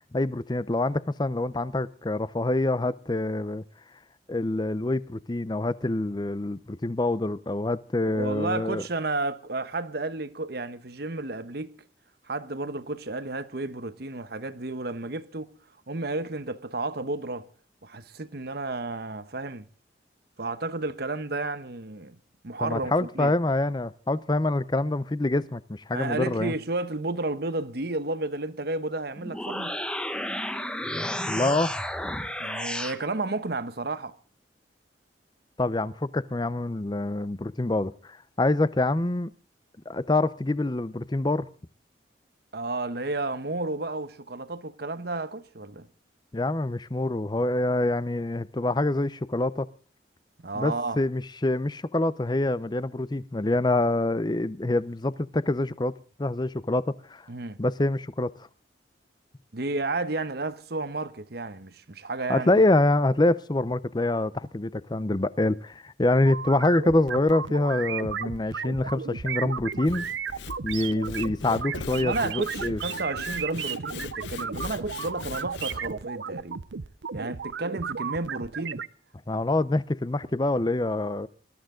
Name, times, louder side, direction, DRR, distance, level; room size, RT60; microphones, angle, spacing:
voice 1, 0.1-3.6 4.3-8.8 22.6-26.5 31.3-31.7 35.6-39.3 39.9-41.5 46.3-49.7 50.5-55.9 56.2-56.8 57.1-57.2 57.6-58.3 62.3-70.1 70.6-72.8 79.3-81.3, left 2 dB, 25° left, 0.6 m, -26 dB
voice 2, 8.0-11.7 12.3-15.5 15.9-17.5 17.8-19.7 20.4-22.2 22.4-23.4 25.9-29.8 32.4-34.1 42.5-45.9 50.4-51.0 57.3-57.6 59.5-62.5 71.9-76.7 77.1-78.8, right 2 dB, 60° right, 1.1 m, -32 dB
sound 1, 29.2-33.0, left 1 dB, 5° left, 1.0 m, -32 dB
sound 2, 66.2-78.9, right 6 dB, 90° right, 0.7 m, -34 dB
Sawing / Wood, 69.7-75.9, left 4 dB, 75° left, 0.8 m, -40 dB
20.5 x 13.0 x 3.8 m
head